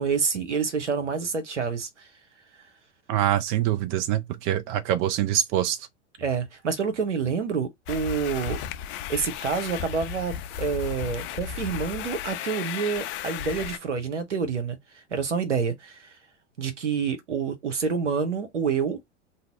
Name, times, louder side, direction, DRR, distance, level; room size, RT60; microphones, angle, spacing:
voice 1, 0.0-1.9 6.2-8.6 9.1-14.8 15.1-16.1 16.6-19.0, right 5 dB, 90° right, 0.8 m, -28 dB
voice 2, 3.1-5.8, right 11 dB, 40° right, 0.6 m, -24 dB
sound 1, 7.9-13.8, left 10 dB, 35° left, 0.4 m, -34 dB
2.7 x 2.1 x 3.8 m
hypercardioid pair, 90°, 35 cm